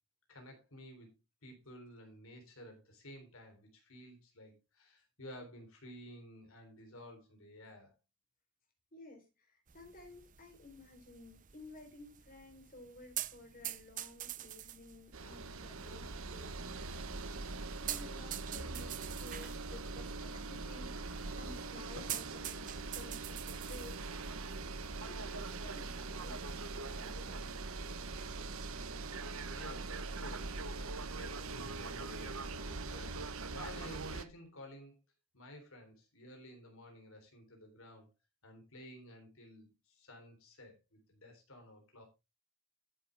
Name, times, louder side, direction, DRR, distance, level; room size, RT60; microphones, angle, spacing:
voice 1, 0.3-1.1 1.4-8.0 29.5-34.9 35.3-38.1 38.4-42.0, equal, 70° left, 3 dB, 3.8 m, -53 dB
voice 2, 8.9-17.1 17.8-24.1 25.1-26.4 26.7-27.5, left 2 dB, 40° left, 4 dB, 4.0 m, -54 dB
sound 1, 9.7-27.1, right 12 dB, 35° right, 0.6 m, -48 dB
sound 2, 15.1-34.2, right 3 dB, 70° right, 1.2 m, -42 dB
sound 3, 18.8-24.1, right 2 dB, 50° right, 6.4 m, -57 dB
12.5 x 8.3 x 3.5 m, 0.25 s
head